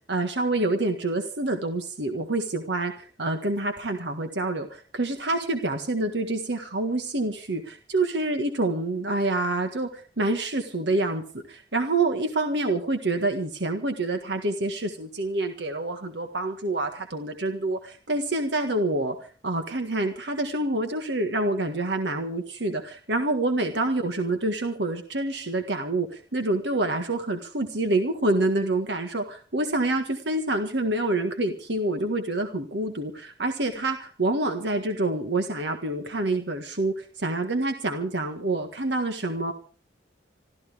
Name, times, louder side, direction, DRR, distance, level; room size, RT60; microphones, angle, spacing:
voice 1, 0.1-19.2 19.4-39.5, right 2 dB, 70° right, 5 dB, 1.7 m, -27 dB
27.0 x 14.0 x 3.6 m, 0.39 s
head